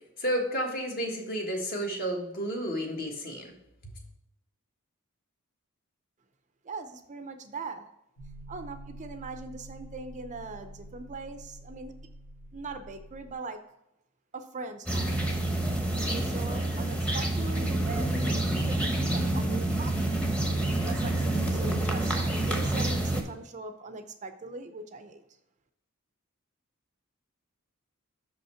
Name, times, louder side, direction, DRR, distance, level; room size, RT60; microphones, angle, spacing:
voice 1, 0.2-3.5 3.8-3.9, equal, 45° left, 1 dB, 1.5 m, -31 dB
voice 2, 6.6-7.8 8.5-11.9 12.5-13.6 14.3-15.3 16.1-20.2 20.8-25.2, right 3 dB, 35° right, 8 dB, 0.5 m, -41 dB
sound 1, 8.2-13.3, right 1 dB, 60° left, 1.6 m, -47 dB
sound 2, 14.9-23.2, right 1 dB, 5° left, 1.0 m, -28 dB
6.3 x 5.5 x 4.3 m, 0.85 s
head